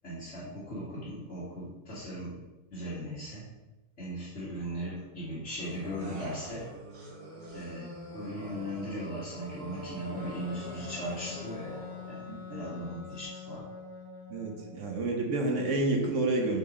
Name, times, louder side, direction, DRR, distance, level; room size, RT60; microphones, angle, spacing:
voice 1, 0.0-2.4 2.7-3.5 4.0-6.7 7.5-11.8 12.0-13.6, equal, 40° left, -10 dB, 2.1 m, -38 dB
sound 1, 5.6-12.2, right 1 dB, 80° right, 2.3 m, -44 dB
Wind instrument woodwind instrument, 10.2-14.8, left 7 dB, 70° left, 1.6 m, -44 dB
voice 2, 12.3-12.7 14.3-16.6, right 2 dB, 50° right, 1 dB, 1.2 m, -29 dB
5.3 x 4.7 x 5.3 m, 1.1 s
omnidirectional pair, 1.9 m